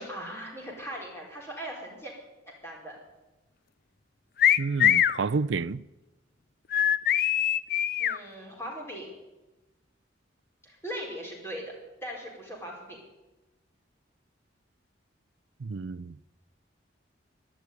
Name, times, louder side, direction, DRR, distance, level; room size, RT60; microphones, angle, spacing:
voice 1, 0.0-2.1 2.6-3.0 8.0-9.1 10.6-11.7 12.0-13.0, equal, 15° left, 4.6 m, -39 dB
sound 1, 4.4-5.2 6.7-8.2, left 10 dB, 50° left, 0.5 m, -22 dB
voice 2, 4.6-5.8 15.6-16.2, right 4 dB, 75° right, 0.5 m, -30 dB
12.0 x 12.0 x 9.6 m
head